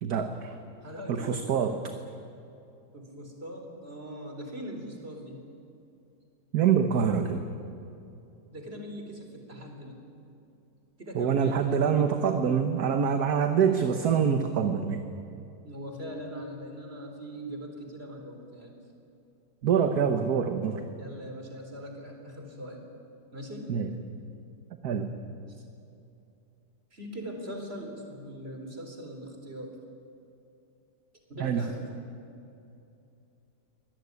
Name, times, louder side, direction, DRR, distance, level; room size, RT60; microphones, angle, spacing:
voice 1, 0.0-0.5 1.1-1.9 6.5-7.4 11.1-15.0 19.6-20.9 23.7-23.9 24.8-25.1 31.4-31.7, right 7 dB, 65° right, 7 dB, 1.6 m, -25 dB
voice 2, 0.8-1.6 2.9-5.4 8.5-10.0 11.0-12.1 15.6-18.8 21.0-22.8 23.3-23.7 25.5-25.6 26.9-29.8 31.3-31.9, equal, 35° right, 3 dB, 4.3 m, -41 dB
24.5 x 18.0 x 9.7 m, 2.7 s
omnidirectional pair, 1.9 m